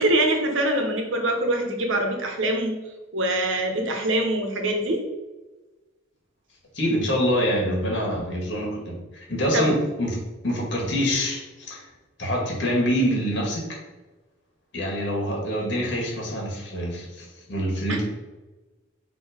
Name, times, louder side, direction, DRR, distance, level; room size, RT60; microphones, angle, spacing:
voice 1, 0.0-2.7 3.1-5.0 9.5-9.7, right 1 dB, 80° right, 3 dB, 1.2 m, -24 dB
voice 2, 6.7-10.2 10.4-11.9 12.2-13.6 14.7-18.0, equal, 60° left, -2 dB, 2.0 m, -25 dB
6.1 x 3.1 x 5.1 m, 1.2 s
head